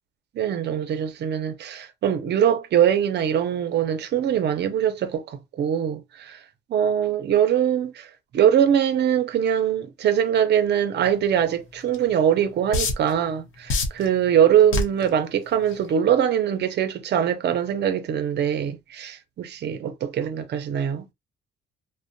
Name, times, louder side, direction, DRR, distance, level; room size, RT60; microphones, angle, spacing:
voice 1, 0.3-6.4 6.7-8.1 8.3-21.1, right 9 dB, 60° right, 0.6 m, -22 dB
sound 1, 11.9-12.0 12.7-13.1 13.7-14.1 14.7-15.0 15.7-15.9, left 3 dB, 90° left, 0.7 m, -23 dB
2.4 x 2.1 x 2.6 m
cardioid pair, 90°, 20 cm